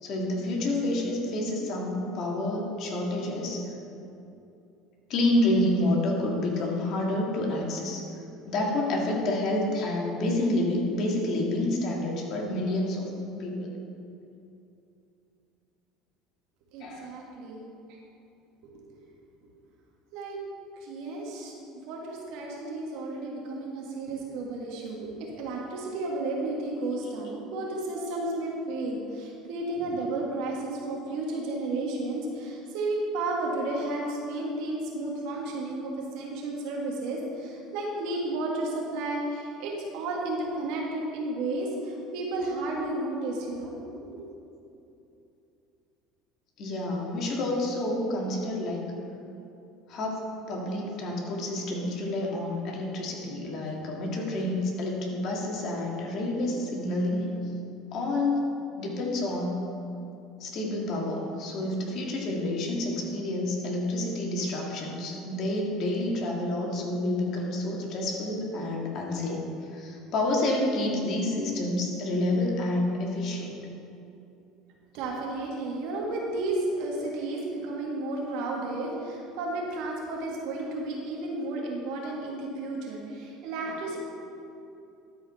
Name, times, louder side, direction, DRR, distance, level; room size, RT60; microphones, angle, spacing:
voice 1, 0.0-3.6 5.1-8.0 8.5-13.1 13.4-13.7 16.8-17.1 46.6-48.9 49.9-57.5 57.9-58.4 58.8-59.6 60.4-69.4 69.7-73.5, left 1 dB, 55° left, -1 dB, 1.9 m, -29 dB
voice 2, 16.7-17.7 18.6-19.1 20.1-20.4 20.8-21.5 21.9-44.2 74.9-84.0, right 2 dB, 70° right, -2 dB, 1.9 m, -32 dB
12.5 x 4.9 x 4.3 m, 2.7 s
supercardioid pair, 90°, 0 cm